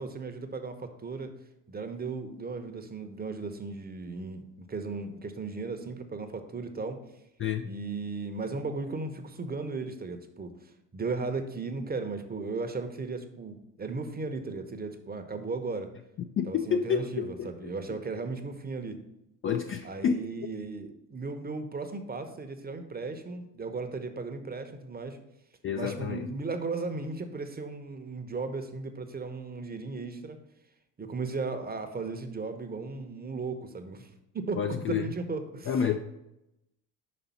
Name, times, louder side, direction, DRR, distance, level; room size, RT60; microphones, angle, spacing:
voice 1, 0.0-1.3 1.7-4.4 4.7-7.0 7.6-10.5 10.9-15.9 16.5-19.0 19.8-25.2 25.7-30.4 31.0-35.7, right 3 dB, 20° right, 7 dB, 0.8 m, -36 dB
voice 2, 7.4-7.7 16.4-18.0 19.4-20.5 25.6-26.3 34.6-35.1 35.6-36.0, left 7 dB, 30° left, 5 dB, 0.4 m, -30 dB
5.4 x 4.2 x 5.5 m, 0.88 s
hypercardioid pair, 60°, 45 cm